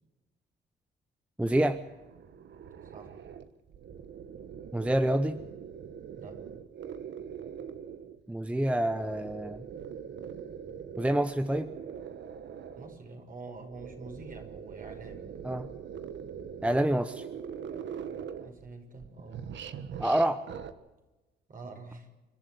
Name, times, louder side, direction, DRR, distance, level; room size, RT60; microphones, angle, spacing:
voice 1, 1.4-1.8 4.7-5.4 8.3-9.6 11.0-11.7 15.4-15.7 16.6-17.3 20.0-20.4, right 1 dB, 5° right, 10 dB, 0.9 m, -27 dB
sound 1, 1.7-8.2 8.6-13.0 13.6-18.7 19.0-20.7, right 8 dB, 65° right, 1.5 m, -43 dB
voice 2, 12.8-15.3 18.4-19.5 21.5-22.1, right 3 dB, 45° right, 4 dB, 6.0 m, -46 dB
29.0 x 12.0 x 8.0 m, 1.1 s
cardioid pair, 90°, 20 cm